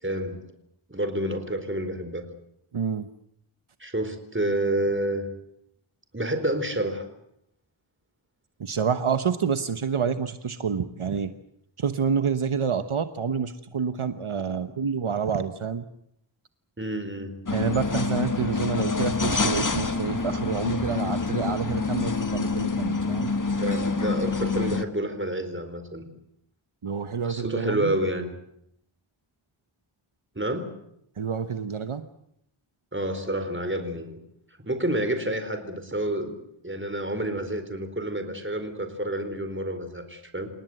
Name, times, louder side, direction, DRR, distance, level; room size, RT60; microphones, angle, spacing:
voice 1, 0.0-0.4 0.9-2.3 3.8-5.2 6.1-7.0 14.5-14.6 16.8-17.3 23.6-26.1 27.2-28.3 30.4-30.7 32.9-34.2 34.6-40.5, right 1 dB, 25° right, 8 dB, 4.4 m, -29 dB
voice 2, 2.7-3.1 8.6-11.3 11.8-15.8 17.5-23.3 26.8-27.9 31.2-32.0, right 6 dB, 75° right, 10 dB, 1.2 m, -28 dB
sound 1, 17.5-24.8, left 4 dB, 40° left, 1.6 m, -27 dB
29.0 x 18.5 x 8.0 m, 0.75 s
wide cardioid pair, 70°, 50 cm